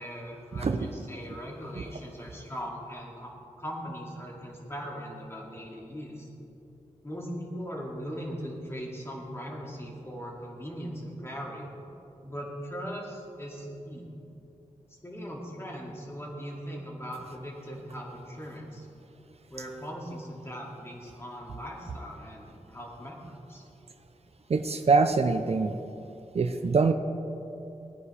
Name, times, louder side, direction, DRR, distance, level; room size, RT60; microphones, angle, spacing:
voice 1, 0.0-6.3 7.0-11.7 12.2-14.1 15.0-18.9 19.5-23.6, equal, 20° left, -2 dB, 2.4 m, -39 dB
voice 2, 24.5-25.7 26.3-26.9, right 4 dB, 55° right, 7 dB, 0.6 m, -24 dB
19.5 x 9.5 x 3.4 m, 2.8 s
wide cardioid pair, 95°, 13 cm